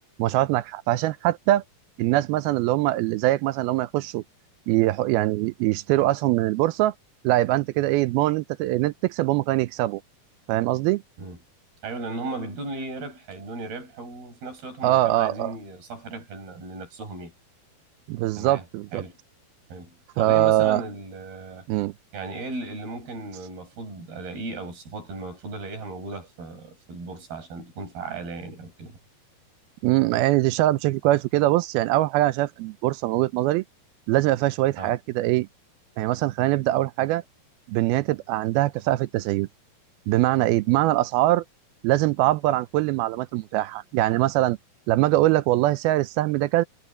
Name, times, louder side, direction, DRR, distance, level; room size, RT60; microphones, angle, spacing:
voice 1, 0.2-1.6 2.0-4.2 4.7-6.9 7.2-10.0 10.5-11.0 14.8-15.5 18.1-19.0 20.2-20.8 21.7-21.9 29.8-33.6 34.1-35.5 36.0-37.2 37.7-39.5 40.1-41.4 41.8-44.6 44.9-46.6, right 16 dB, 80° right, 2.3 m, -22 dB
voice 2, 11.8-17.3 18.4-18.7 18.9-19.2 19.7-21.7 22.1-29.0 34.8-35.0, right 3 dB, 65° right, 8.4 m, -36 dB
omnidirectional pair, 4.8 m